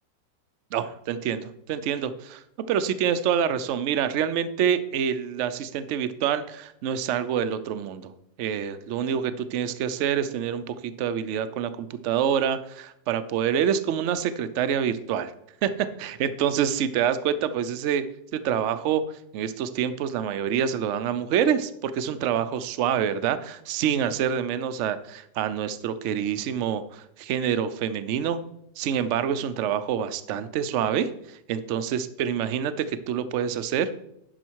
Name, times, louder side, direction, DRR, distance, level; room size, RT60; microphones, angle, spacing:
voice 1, 0.7-2.4 2.7-8.1 8.4-15.3 15.6-18.1 18.3-19.0 19.3-28.4 28.8-33.9, right 8 dB, 70° right, 12 dB, 0.7 m, -26 dB
10.5 x 5.7 x 4.6 m, 0.79 s
omnidirectional pair, 1.9 m